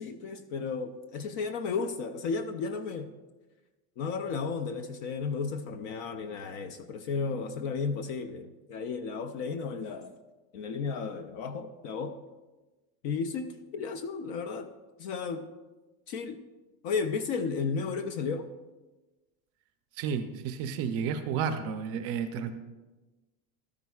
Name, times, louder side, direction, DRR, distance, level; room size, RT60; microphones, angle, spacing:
voice 1, 0.0-3.1 4.0-10.1 10.5-12.2 13.0-14.7 15.0-15.5 16.1-16.4 16.8-18.5, left 5 dB, 35° left, 10 dB, 0.4 m, -33 dB
voice 2, 20.0-22.5, right 7 dB, 35° right, 8 dB, 0.5 m, -31 dB
13.5 x 12.0 x 2.3 m, 1.2 s
supercardioid pair, 160°, 44 cm